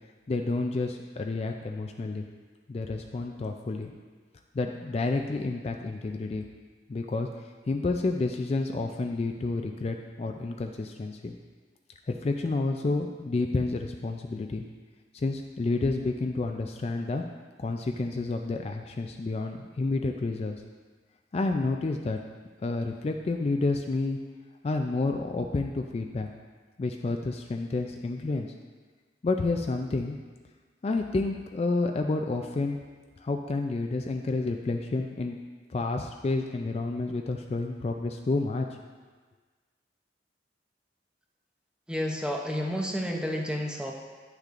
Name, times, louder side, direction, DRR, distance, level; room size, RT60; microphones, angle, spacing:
voice 1, 0.3-2.2 2.7-3.9 4.5-6.5 6.9-11.4 12.1-14.7 15.1-17.2 17.6-20.6 21.3-22.2 22.6-24.2 24.6-26.3 26.8-28.5 29.2-30.2 30.8-32.8 33.2-35.4 35.7-38.7, left 3 dB, 35° left, 4 dB, 0.3 m, -30 dB
voice 2, 41.9-43.9, equal, 5° right, 0 dB, 0.6 m, -30 dB
10.0 x 6.5 x 2.5 m, 1.4 s
head